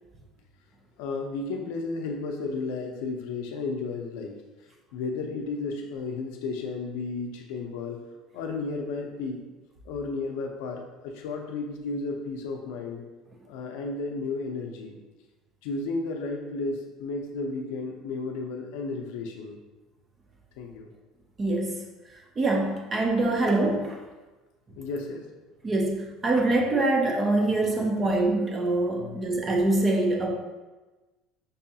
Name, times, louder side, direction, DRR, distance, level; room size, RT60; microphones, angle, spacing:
voice 1, 1.0-4.4 4.9-8.0 8.3-9.4 9.9-13.0 13.5-15.0 15.6-19.6 20.6-20.9 24.8-25.3 29.0-29.2, left 3 dB, 75° left, 2 dB, 0.4 m, -33 dB
voice 2, 21.4-21.9 22.4-24.0 25.6-30.3, right 2 dB, 20° right, 1 dB, 0.5 m, -24 dB
5.3 x 2.3 x 2.7 m, 1.2 s
cardioid pair, 175°, 0 cm